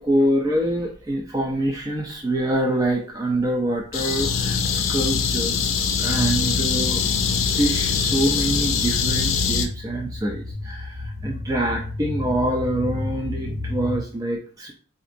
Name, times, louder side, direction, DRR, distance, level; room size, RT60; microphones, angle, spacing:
voice 1, 0.0-7.0 7.5-14.7, right 1 dB, 20° right, 0 dB, 0.3 m, -25 dB
sound 1, 3.5-4.4 4.6-14.0, left 2 dB, 35° right, 1.1 m, -34 dB
sound 2, 3.9-9.7, left 6 dB, 80° left, 0.5 m, -23 dB
3.9 x 2.6 x 2.5 m, 0.43 s
head